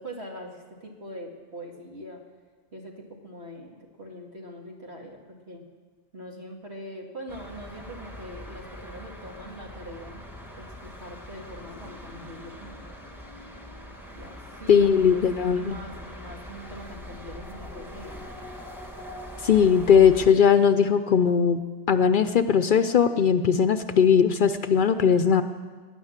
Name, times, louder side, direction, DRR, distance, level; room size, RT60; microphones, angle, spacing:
voice 1, 0.0-2.2 2.7-5.6 6.1-10.2 10.6-13.0 14.1-18.2, equal, 70° right, 0 dB, 2.5 m, -42 dB
sound 1, 7.3-20.3, left 1 dB, ahead, 1.6 m, -42 dB
voice 2, 14.7-15.8 19.4-21.6 21.9-25.4, left 7 dB, 55° left, 10 dB, 0.7 m, -19 dB
18.5 x 10.0 x 7.3 m, 1.5 s
omnidirectional pair, 1.1 m